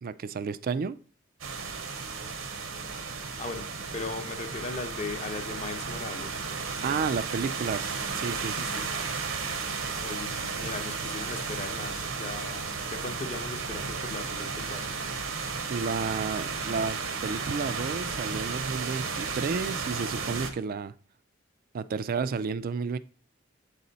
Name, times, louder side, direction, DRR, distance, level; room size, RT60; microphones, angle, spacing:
voice 1, 0.0-1.0 6.8-8.6 15.7-20.9 21.7-23.0, right 5 dB, 45° right, 15 dB, 0.3 m, -31 dB
sound 1, 1.4-20.5, right 4 dB, 70° right, 0.8 m, -34 dB
voice 2, 3.9-6.5 8.5-8.9 10.0-14.9, left 3 dB, 35° left, 7 dB, 0.7 m, -38 dB
7.6 x 4.2 x 3.9 m, 0.40 s
head